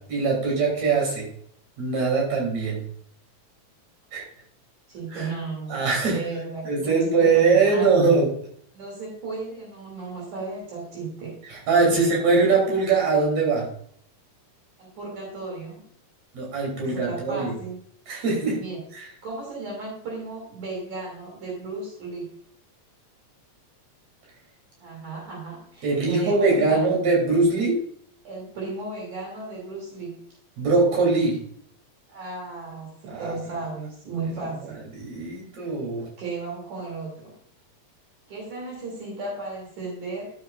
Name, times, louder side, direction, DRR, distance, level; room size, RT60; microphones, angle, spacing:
voice 1, 0.1-1.3 1.8-2.8 4.1-4.2 5.1-5.3 5.7-6.2 6.6-8.3 11.5-13.6 16.3-17.5 18.1-18.6 18.9-19.0 25.8-27.8 30.6-31.4 33.1-33.3 35.0-36.0, right 4 dB, 65° right, -1 dB, 4.6 m, -22 dB
voice 2, 4.9-8.1 8.7-11.4 11.8-12.1 14.8-15.8 16.8-17.8 18.6-18.8 19.2-22.3 24.8-27.1 28.2-30.1 32.1-34.8 36.0-37.3 38.3-40.3, right 3 dB, 80° right, -2 dB, 4.2 m, -35 dB
11.5 x 7.9 x 2.5 m, 0.63 s
omnidirectional pair, 3.4 m